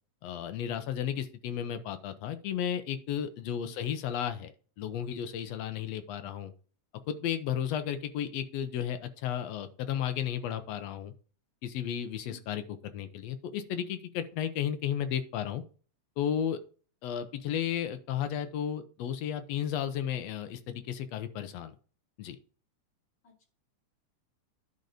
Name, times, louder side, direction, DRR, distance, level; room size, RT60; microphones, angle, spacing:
voice 1, 0.2-4.5 4.8-6.5 7.1-11.1 11.6-12.6 12.9-15.6 16.2-16.6 17.0-21.8 22.2-22.4, left 9 dB, 70° left, 10 dB, 1.8 m, -33 dB
voice 2, 3.4-3.7 12.3-12.4 23.2-23.5, left 6 dB, 40° left, -1 dB, 3.1 m, -54 dB
10.5 x 4.1 x 5.0 m, 0.39 s
omnidirectional pair, 3.4 m